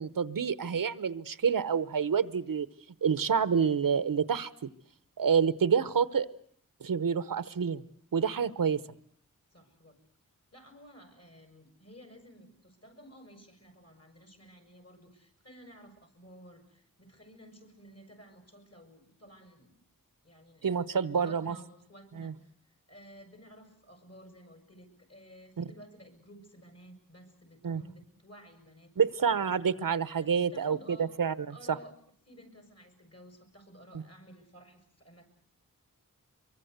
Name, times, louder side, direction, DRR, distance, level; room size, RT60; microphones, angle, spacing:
voice 1, 0.0-2.7 3.0-4.5 5.2-6.3 6.8-7.8 8.1-8.8 20.6-21.5 22.2-22.3 25.6-25.7 27.6-27.8 29.0-31.3 31.7-31.8, right 6 dB, 75° right, 15 dB, 1.0 m, -28 dB
voice 2, 9.5-10.0 10.5-19.7 20.2-29.3 30.2-31.1 31.5-31.9 32.3-35.3, equal, 45° left, 6 dB, 6.9 m, -54 dB
24.0 x 23.0 x 8.0 m, 0.63 s
wide cardioid pair, 70°, 34 cm